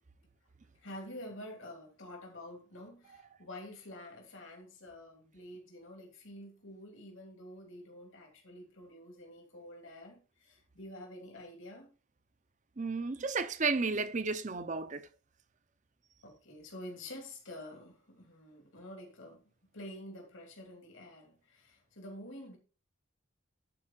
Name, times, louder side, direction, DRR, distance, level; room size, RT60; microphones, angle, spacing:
voice 1, 0.8-11.9 16.2-19.4 19.7-22.6, left 1 dB, 75° left, 2.8 m, -48 dB
voice 2, 12.8-15.1, right 4 dB, 35° right, 0.7 m, -33 dB
11.0 x 4.8 x 4.4 m
head